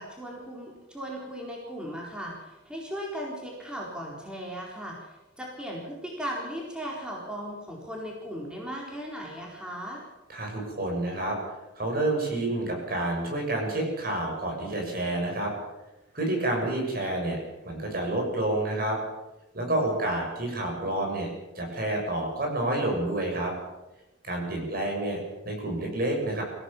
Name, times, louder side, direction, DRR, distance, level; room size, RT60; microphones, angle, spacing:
voice 1, 0.0-10.0 19.8-19.9 24.5-24.8, equal, 5° right, -2 dB, 4.3 m, -37 dB
voice 2, 10.3-11.4 11.8-15.5 16.1-17.4 17.6-19.0 19.5-21.3 21.6-23.5 24.2-26.4, right 1 dB, 50° right, 1 dB, 7.3 m, -29 dB
25.5 x 16.0 x 7.4 m, 1.0 s
head